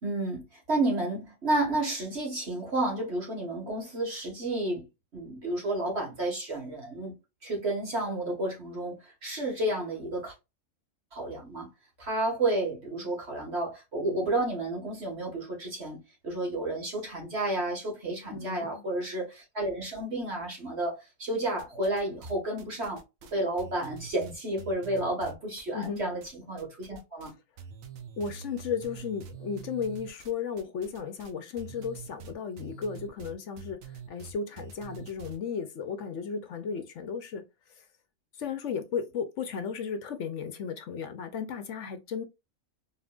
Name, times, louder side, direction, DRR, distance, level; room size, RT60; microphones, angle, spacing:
voice 1, 0.0-7.2 7.4-10.3 11.1-11.7 12.0-16.0 16.2-23.0 23.3-27.3, right 1 dB, 50° right, 2.1 m, -31 dB
voice 2, 18.3-18.8 25.7-26.0 28.2-37.4 37.8-37.9 38.4-42.2, left 6 dB, 65° left, 1.0 m, -35 dB
sound 1, 21.6-22.3 22.6-26.3 26.6-27.3 27.6-35.4, right 7 dB, 75° right, 1.2 m, -45 dB
4.1 x 3.6 x 2.4 m
omnidirectional pair, 1.4 m